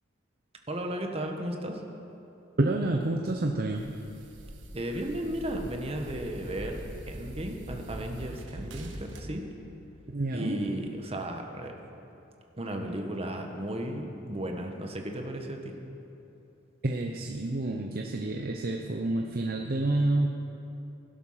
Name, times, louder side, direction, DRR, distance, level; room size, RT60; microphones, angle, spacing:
voice 1, 0.7-1.8 4.7-6.8 7.1-9.4 10.3-11.8 12.6-15.7, right 1 dB, 30° right, 3 dB, 1.4 m, -34 dB
voice 2, 2.6-4.0 10.1-10.7 16.8-20.3, right 2 dB, 55° right, 2 dB, 0.8 m, -29 dB
sound 1, 3.7-9.2, right 1 dB, 80° right, 1.4 m, -43 dB
17.0 x 11.5 x 5.8 m, 2.9 s
head